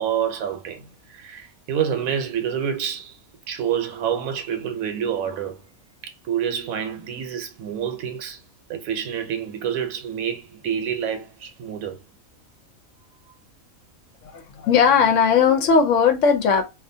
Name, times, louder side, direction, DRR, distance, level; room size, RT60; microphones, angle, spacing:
voice 1, 0.0-3.2 3.5-5.6 6.0-8.4 8.7-12.0, right 8 dB, 75° right, 1.0 m, -28 dB
voice 2, 14.2-16.6, left 6 dB, 70° left, 0.9 m, -18 dB
2.5 x 2.3 x 2.6 m
omnidirectional pair, 1.5 m